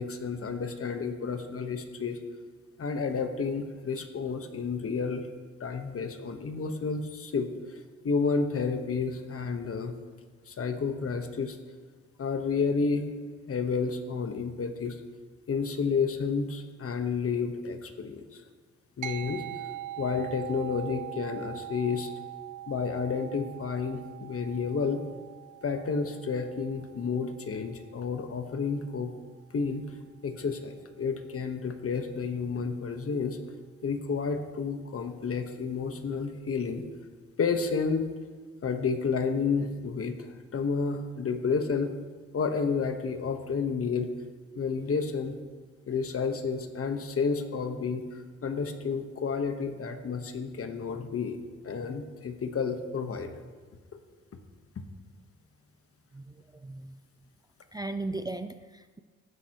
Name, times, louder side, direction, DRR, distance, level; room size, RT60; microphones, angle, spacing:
voice 1, 0.0-2.2 2.8-5.2 5.6-7.5 8.0-9.9 10.5-11.6 12.2-13.1 13.5-15.0 15.5-18.4 19.0-19.4 20.0-22.1 22.7-25.0 25.6-29.1 29.5-29.9 30.2-33.4 33.8-36.8 37.4-38.1 38.6-41.9 42.3-44.1 44.5-45.4 45.9-51.4 51.6-53.3 54.8-54.9, left 5 dB, 50° left, 6 dB, 1.2 m, -30 dB
sound 1, 19.0-28.7, right 13 dB, 75° right, 0.6 m, -43 dB
voice 2, 56.1-57.0 57.7-59.0, right 2 dB, 15° right, 9 dB, 0.4 m, -37 dB
15.0 x 9.8 x 3.0 m, 1.5 s
cardioid pair, 75°, 30 cm